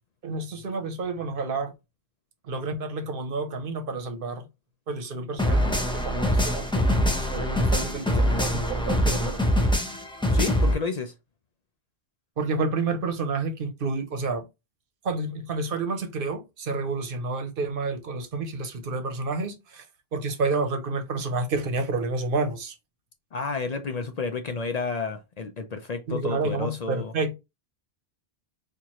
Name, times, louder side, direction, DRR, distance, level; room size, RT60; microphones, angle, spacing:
voice 1, 0.2-1.7 2.4-4.5 4.9-9.5 12.4-14.4 15.0-19.8 20.1-22.7 26.1-27.3, right 3 dB, 60° right, 0.9 m, -30 dB
sound 1, 5.4-10.7, equal, 5° left, 0.5 m, -23 dB
voice 2, 10.3-11.1 23.3-27.1, left 4 dB, 50° left, 0.5 m, -31 dB
4.4 x 2.5 x 2.9 m
omnidirectional pair, 1.1 m